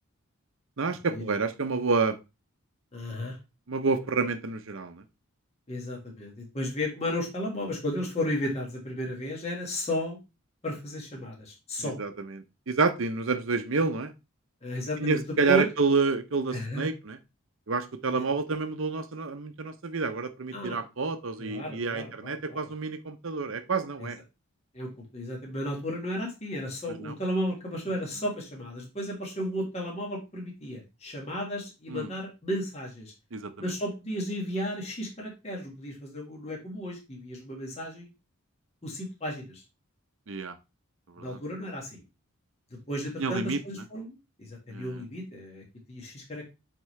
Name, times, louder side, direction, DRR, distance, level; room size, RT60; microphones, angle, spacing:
voice 1, 0.8-2.2 3.7-5.0 11.8-14.1 15.0-17.2 17.7-24.2 27.0-27.1 31.9-32.1 33.3-33.7 40.3-40.5 41.2-41.4 43.2-43.6 44.7-44.9, right 4 dB, 65° right, 9 dB, 0.7 m, -29 dB
voice 2, 2.9-3.4 5.7-10.2 10.6-12.0 14.6-15.7 16.5-16.9 18.1-18.2 20.5-20.8 21.4-22.7 24.0-24.1 24.7-33.1 33.6-38.1 38.8-39.6 41.2-42.0 42.7-46.4, equal, 30° left, -1 dB, 1.7 m, -34 dB
8.4 x 3.8 x 3.2 m, 0.26 s
head